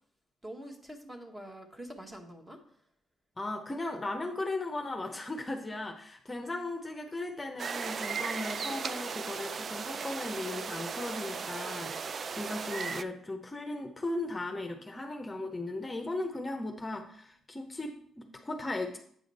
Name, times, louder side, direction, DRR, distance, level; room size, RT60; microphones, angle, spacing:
voice 1, 0.4-2.6, right 1 dB, 15° right, 4 dB, 1.3 m, -45 dB
voice 2, 3.4-19.0, left 2 dB, 20° left, 4 dB, 0.8 m, -37 dB
sound 1, 7.6-13.0, right 5 dB, 45° right, 0.3 m, -36 dB
8.6 x 4.9 x 4.1 m, 0.64 s
cardioid pair, 90°, 0 cm